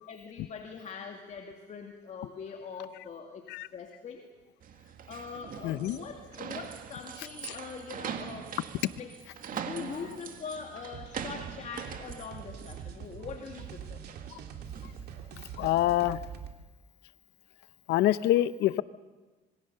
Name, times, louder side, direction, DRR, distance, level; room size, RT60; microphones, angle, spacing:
voice 1, 0.0-3.4 3.7-4.3 4.8-8.5 9.0-9.2 9.5-14.0, left 6 dB, 45° left, 3 dB, 2.3 m, -43 dB
sound 1, 4.6-15.0, right 8 dB, 55° right, 2.1 m, -42 dB
voice 2, 5.6-6.0 7.4-7.6 15.6-16.2 17.9-18.8, left 14 dB, 85° left, 15 dB, 0.9 m, -26 dB
sound 2, 10.9-16.5, right 8 dB, 70° right, 2.6 m, -44 dB
26.5 x 22.0 x 6.8 m, 1.3 s
cardioid pair, 110°, 17 cm